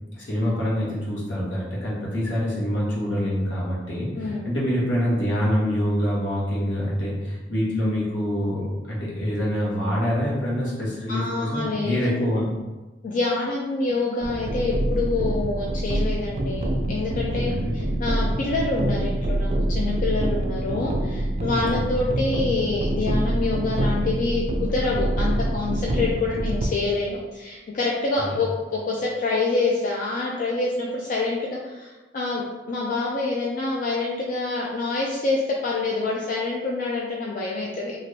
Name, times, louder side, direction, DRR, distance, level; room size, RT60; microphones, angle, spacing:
voice 1, 0.1-12.5 17.5-17.8 21.5-21.8 28.2-28.3, equal, 80° left, -6 dB, 1.1 m, -26 dB
voice 2, 4.1-4.5 11.1-12.0 13.0-38.0, left 3 dB, 45° left, -3 dB, 0.4 m, -26 dB
sound 1, 14.2-26.7, right 1 dB, 35° right, 0.3 m, -26 dB
3.2 x 2.5 x 2.7 m, 1.2 s
head